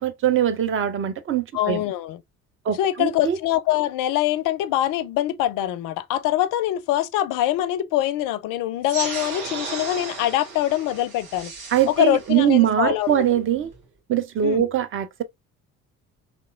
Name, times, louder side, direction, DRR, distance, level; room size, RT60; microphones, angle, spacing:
voice 1, 0.0-1.8 2.7-3.4 11.7-13.7 14.1-15.2, right 10 dB, 30° right, 0.5 m, -22 dB
voice 2, 1.5-2.2 2.8-11.5 11.9-13.4 14.4-14.7, left 13 dB, 50° left, 0.5 m, -24 dB
sound 1, 8.8-13.8, right 4 dB, 55° right, 1.3 m, -35 dB
3.1 x 2.9 x 2.3 m
figure-of-eight pair, 50°, 44 cm